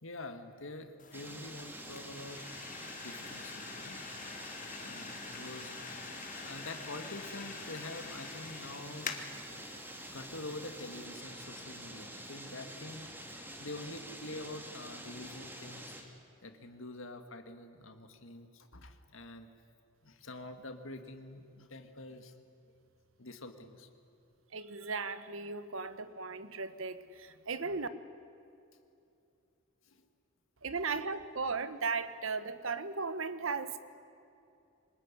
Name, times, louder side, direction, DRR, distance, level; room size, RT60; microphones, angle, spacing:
voice 1, 0.0-2.4 3.0-4.0 4.8-5.7 6.4-9.2 9.5-9.6 10.1-13.1 13.6-15.8 16.4-19.5 20.0-22.3 23.2-23.9 25.8-25.9 29.9-30.1, left 2 dB, 65° left, 7 dB, 2.0 m, -46 dB
sound 1, 1.0-11.1, left 5 dB, 40° left, 1.9 m, -47 dB
sound 2, 1.1-16.0, right 1 dB, 10° right, 2.6 m, -47 dB
voice 2, 24.5-27.9 30.6-33.8, right 4 dB, 70° right, 12 dB, 1.3 m, -36 dB
24.5 x 20.5 x 9.9 m, 2.7 s
head